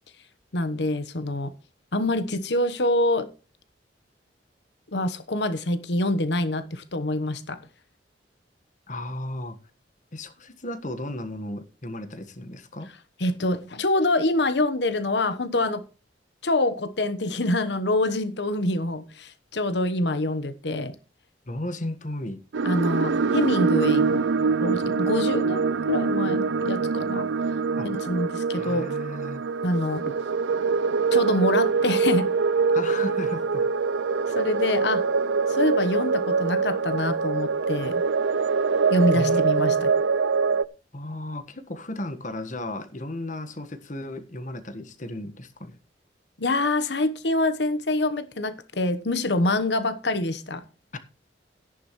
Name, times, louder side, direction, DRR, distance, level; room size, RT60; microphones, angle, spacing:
voice 1, 0.5-1.5 1.9-3.3 4.9-7.6 13.2-15.8 16.4-20.9 22.6-24.3 24.6-27.3 27.8-28.9 29.6-30.2 31.1-32.3 34.3-35.1 35.5-38.0 38.9-39.9 46.4-50.6, left 2 dB, 70° left, 1.1 m, -25 dB
voice 2, 8.9-9.6 10.1-12.9 21.5-22.4 27.8-27.9 28.6-29.4 32.7-33.7 39.1-39.8 40.9-45.8 50.9-51.0, left 1 dB, 45° left, 1.5 m, -34 dB
sound 1, 22.5-40.6, right 5 dB, 90° right, 0.5 m, -24 dB
13.5 x 10.5 x 3.1 m
head